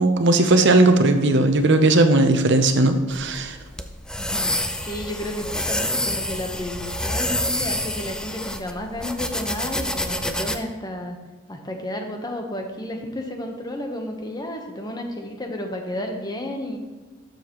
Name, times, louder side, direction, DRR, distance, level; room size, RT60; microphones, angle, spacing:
voice 1, 0.0-3.6, right 2 dB, 60° right, 7 dB, 0.8 m, -17 dB
sound 1, 3.1-10.6, left 1 dB, 5° left, 0.4 m, -27 dB
voice 2, 4.2-4.5 4.8-11.2 11.5-16.8, left 1 dB, 20° left, 3 dB, 1.0 m, -32 dB
12.5 x 6.6 x 3.1 m, 1.3 s
head